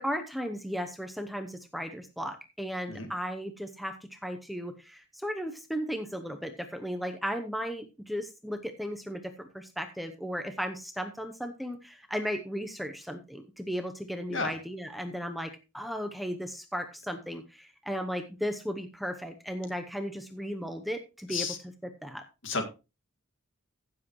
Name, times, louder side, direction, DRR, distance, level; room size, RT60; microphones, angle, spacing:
voice 1, 0.0-21.5 22.0-22.2, equal, ahead, 6 dB, 0.7 m, -35 dB
voice 2, 2.9-3.1 14.3-14.5 21.3-21.6 22.4-22.6, left 4 dB, 60° left, 6 dB, 2.0 m, -31 dB
15.5 x 7.5 x 3.1 m, 0.28 s
head